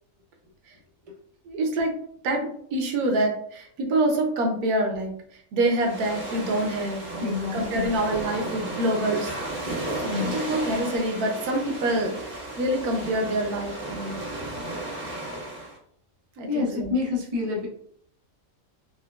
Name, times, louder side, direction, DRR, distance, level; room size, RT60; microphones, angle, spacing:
voice 1, 1.4-1.9 2.2-5.1 5.5-9.3 10.0-14.2 16.4-16.9, right 1 dB, 85° right, 2 dB, 1.2 m, -26 dB
sound 1, 5.8-15.8, right 1 dB, 55° right, 2.0 m, -34 dB
voice 2, 7.2-7.9 10.0-10.4 16.5-17.7, left 4 dB, 30° right, -2 dB, 0.7 m, -28 dB
4.9 x 2.1 x 2.2 m, 0.63 s
omnidirectional pair, 1.5 m